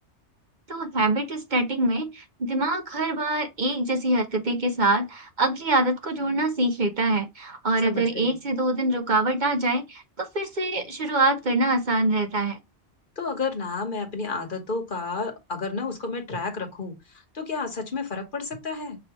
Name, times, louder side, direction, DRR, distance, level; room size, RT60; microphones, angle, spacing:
voice 1, 0.7-12.6, right 2 dB, 45° right, 1.0 m, -24 dB
voice 2, 7.8-8.4 13.2-19.0, left 4 dB, 45° left, 1.4 m, -31 dB
6.1 x 2.9 x 2.9 m
omnidirectional pair, 1.2 m